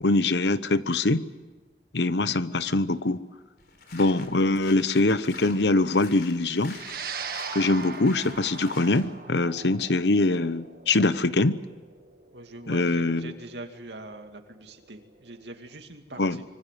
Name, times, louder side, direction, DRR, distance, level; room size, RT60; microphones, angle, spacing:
voice 1, 0.0-1.2 1.9-3.2 3.9-6.8 7.5-11.6 12.7-13.3 16.2-16.4, left 2 dB, 80° left, 14 dB, 1.0 m, -23 dB
sound 1, 3.6-9.1, left 4 dB, 65° left, 3.8 m, -47 dB
sound 2, 6.7-15.2, right 5 dB, 55° right, 1.7 m, -40 dB
voice 2, 12.3-16.4, right 2 dB, 80° right, 5 dB, 2.4 m, -43 dB
25.5 x 24.0 x 7.6 m, 1.3 s
head